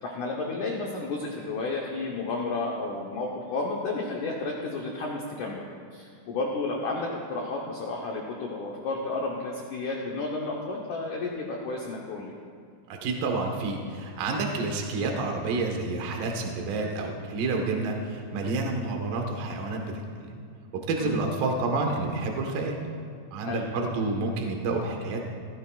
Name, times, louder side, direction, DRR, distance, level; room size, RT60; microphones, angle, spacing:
voice 1, 0.0-12.3 21.0-21.1 23.5-23.7, left 3 dB, 80° left, -1 dB, 1.8 m, -32 dB
voice 2, 12.9-20.3 20.7-22.8 23.3-25.2, right 3 dB, 65° right, 2 dB, 2.6 m, -29 dB
16.0 x 16.0 x 2.4 m, 2.4 s
omnidirectional pair, 5.1 m